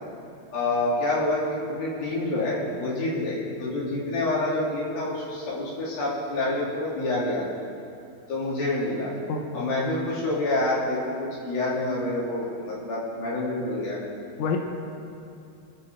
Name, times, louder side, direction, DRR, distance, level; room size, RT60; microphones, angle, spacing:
voice 1, 0.5-7.5 8.3-9.1 9.5-14.0, left 2 dB, 55° left, -7 dB, 5.1 m, -27 dB
voice 2, 9.3-10.1 14.4-14.6, left 5 dB, 70° left, 2 dB, 1.8 m, -30 dB
28.5 x 10.0 x 4.0 m, 2.6 s
omnidirectional pair, 5.2 m